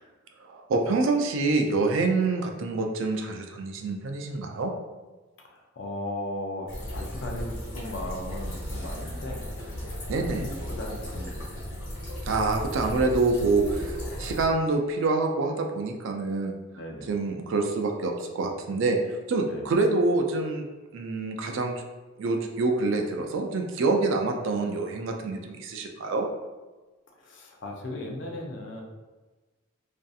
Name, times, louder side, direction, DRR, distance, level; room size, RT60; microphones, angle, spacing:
voice 1, 0.5-4.7 10.1-10.4 12.3-16.5 17.1-19.0 19.3-20.6 20.9-21.7 22.2-26.3, right 3 dB, 65° right, 3 dB, 0.3 m, -26 dB
voice 2, 5.4-9.4 10.2-11.7 16.7-17.1 19.4-19.7 27.2-28.8, left 1 dB, 55° left, 0 dB, 0.4 m, -37 dB
sound 1, 6.7-14.5, equal, 75° left, 1.2 m, -35 dB
2.6 x 2.4 x 2.3 m, 1.2 s
head